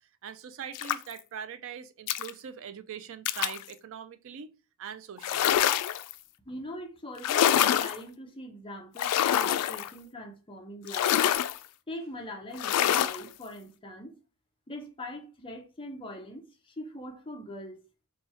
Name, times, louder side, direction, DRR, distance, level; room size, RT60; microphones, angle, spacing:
voice 1, 0.2-4.5 4.8-5.6, right 7 dB, 60° right, 0.4 m, -42 dB
sound 1, 0.7-1.2 2.1-2.3 3.3-3.6 5.2-6.1 7.2-8.0 9.0-9.9 10.9-11.6 12.6-13.2, left 10 dB, 90° left, 0.3 m, -25 dB
voice 2, 6.5-11.2 11.9-14.1 14.7-17.8, left 1 dB, 25° left, 0.6 m, -42 dB
3.1 x 2.3 x 4.2 m
head